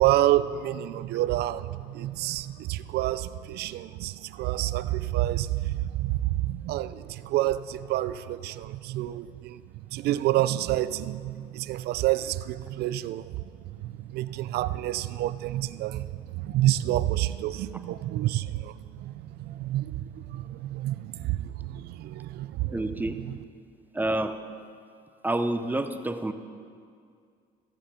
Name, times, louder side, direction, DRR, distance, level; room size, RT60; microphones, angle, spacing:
voice 1, 0.0-9.6 9.9-13.4 13.8-22.8 23.3-23.4, right 14 dB, 70° right, 15 dB, 0.4 m, -28 dB
voice 2, 22.7-23.2 23.9-24.3 25.2-26.3, right 1 dB, 10° right, 8 dB, 0.6 m, -28 dB
15.0 x 7.2 x 5.2 m, 2.3 s
cardioid pair, 110°, 17 cm